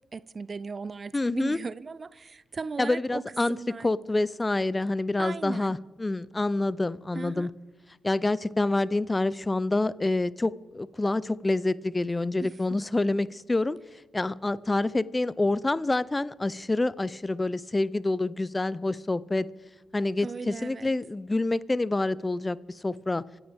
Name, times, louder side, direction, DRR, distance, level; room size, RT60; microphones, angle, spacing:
voice 1, 0.1-3.2 3.5-3.9 5.2-5.8 7.1-7.5 12.4-12.8 20.2-20.9, right 4 dB, 45° right, 0.4 m, -37 dB
voice 2, 1.1-1.6 2.8-3.6 3.8-7.5 8.0-13.8 14.1-19.5 19.9-22.6 22.8-23.2, left 2 dB, 25° left, 0.6 m, -27 dB
25.5 x 11.0 x 3.6 m
hypercardioid pair, 45°, 0 cm